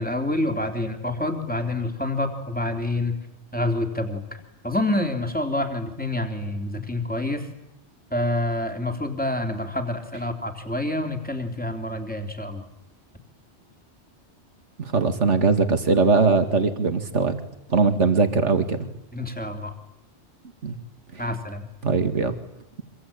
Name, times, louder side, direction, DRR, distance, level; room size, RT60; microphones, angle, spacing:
voice 1, 0.0-3.2 3.5-7.5 8.1-12.6 19.1-19.7 21.2-21.7, left 1 dB, 5° left, 4 dB, 3.3 m, -27 dB
voice 2, 14.8-17.3 17.7-18.8 20.6-20.8 21.8-22.3, right 4 dB, 80° right, 8 dB, 2.5 m, -20 dB
26.0 x 25.0 x 8.8 m, 0.86 s
omnidirectional pair, 1.2 m